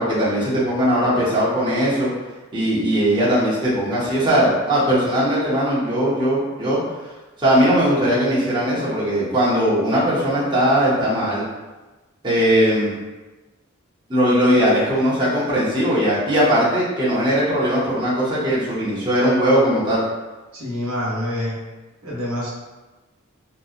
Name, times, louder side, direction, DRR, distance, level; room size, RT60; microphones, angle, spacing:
voice 1, 0.0-2.1 2.5-6.8 7.4-11.4 12.2-12.9 14.1-20.0, equal, 20° right, -9 dB, 0.8 m, -19 dB
voice 2, 20.5-21.6 22.0-22.5, left 1 dB, 80° right, -6 dB, 0.8 m, -26 dB
2.7 x 2.2 x 2.4 m, 1.2 s
head